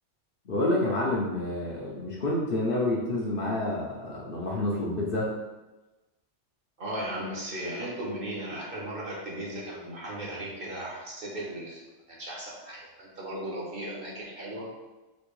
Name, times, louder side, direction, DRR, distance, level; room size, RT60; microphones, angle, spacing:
voice 1, 0.5-5.3, left 1 dB, 55° left, -3 dB, 0.7 m, -28 dB
voice 2, 6.8-14.7, right 1 dB, 50° right, -4 dB, 1.1 m, -36 dB
4.3 x 2.8 x 3.1 m, 1.1 s
omnidirectional pair, 1.3 m